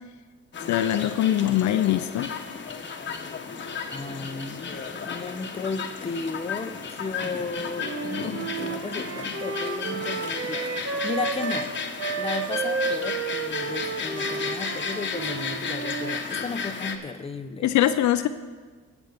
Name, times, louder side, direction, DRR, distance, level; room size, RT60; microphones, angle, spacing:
sound 1, 0.5-17.0, left 5 dB, 40° left, 1.1 m, -34 dB
voice 1, 0.7-2.3 17.6-18.3, left 12 dB, 75° left, 11 dB, 0.5 m, -22 dB
voice 2, 3.9-17.7, left 4 dB, 20° left, 8 dB, 0.8 m, -35 dB
Wind instrument woodwind instrument, 7.8-11.7 12.0-16.2, right 4 dB, 50° right, 1.2 m, -32 dB
20.0 x 7.1 x 3.6 m, 1.4 s
cardioid pair, 90°, 30 cm